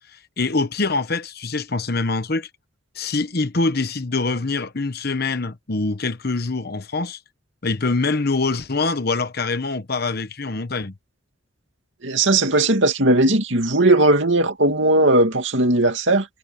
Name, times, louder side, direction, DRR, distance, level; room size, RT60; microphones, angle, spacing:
voice 1, 0.1-2.5 2.9-7.2 7.6-10.9, left 3 dB, 50° left, 1.1 m, -24 dB
voice 2, 12.0-16.3, right 2 dB, 65° right, 2.7 m, -17 dB
head